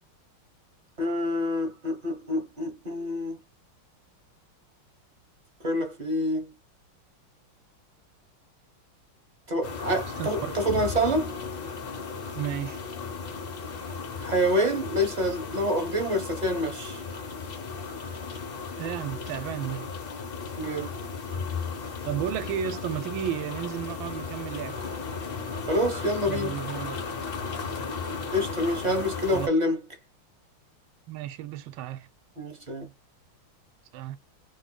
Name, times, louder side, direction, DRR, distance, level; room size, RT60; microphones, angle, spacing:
voice 1, 1.0-3.4 5.6-6.5 9.5-11.3 14.2-17.0 20.6-20.9 25.7-26.5 28.3-29.8 32.4-32.9, equal, 35° right, 0.7 m, -27 dB
sound 1, 9.6-29.5, left 5 dB, 70° left, 0.5 m, -35 dB
voice 2, 10.2-10.6 12.3-12.8 18.8-19.9 22.1-24.8 26.3-27.0 29.3-29.5 31.1-32.1 33.9-34.2, right 10 dB, 75° right, 1.3 m, -33 dB
3.2 x 2.8 x 2.2 m
omnidirectional pair, 2.3 m